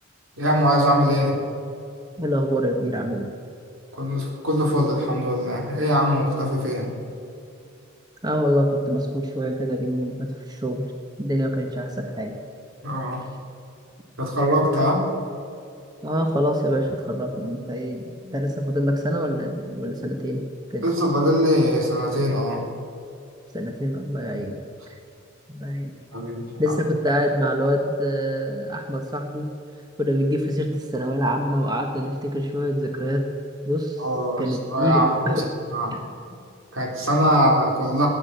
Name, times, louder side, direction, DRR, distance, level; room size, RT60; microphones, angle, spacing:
voice 1, 0.4-1.4 3.9-6.9 12.8-13.3 14.2-15.1 18.2-18.3 20.8-22.6 26.1-26.8 34.0-35.4 35.7-36.0 36.7-38.1, equal, 75° right, 0 dB, 3.6 m, -22 dB
voice 2, 2.2-3.3 8.2-10.8 11.2-12.3 14.8-14.9 16.0-20.4 20.7-20.8 23.5-24.6 25.5-26.0 26.6-29.5 30.0-33.3 33.6-34.0 34.4-35.4, equal, 20° right, 3 dB, 1.3 m, -25 dB
17.5 x 10.0 x 8.0 m, 2.6 s
head